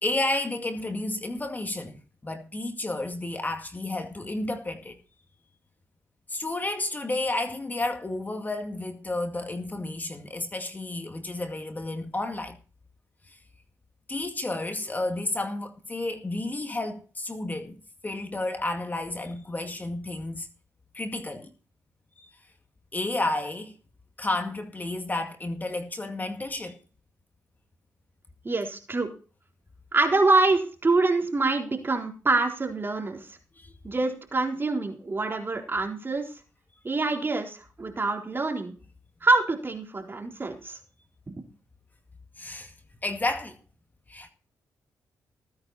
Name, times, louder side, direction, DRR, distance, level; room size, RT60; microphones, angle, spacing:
voice 1, 0.0-5.0 6.3-12.6 13.3-13.4 14.1-17.8 18.0-20.5 20.9-21.5 22.2-22.3 22.9-23.7 24.2-26.8 33.6-33.7 42.4-42.7 43.0-43.6 44.1-44.3, left 2 dB, 25° left, 2.1 m, -31 dB
voice 2, 28.4-29.1 29.9-33.2 33.8-36.3 36.8-38.7 39.2-40.8, right 3 dB, 30° right, 3.9 m, -25 dB
18.5 x 9.5 x 4.2 m
supercardioid pair, 60°, 7 cm